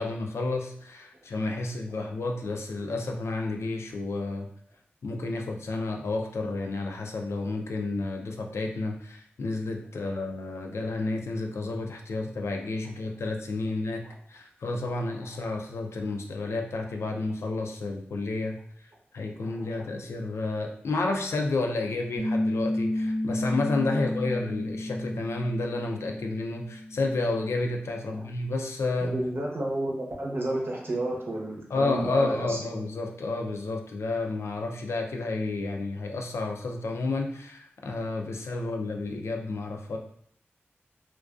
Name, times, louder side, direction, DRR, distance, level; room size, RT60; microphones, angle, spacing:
voice 1, 0.0-4.5 5.0-18.6 19.1-29.2 31.7-40.0, left 2 dB, 85° left, 2 dB, 0.4 m, -31 dB
voice 2, 19.4-19.9 28.1-28.3 29.0-32.6, right 1 dB, 60° right, -2 dB, 0.7 m, -31 dB
Piano, 22.2-27.3, left 1 dB, 20° right, 0.6 m, -31 dB
2.3 x 2.2 x 2.4 m, 0.63 s
cardioid pair, 45°, 4 cm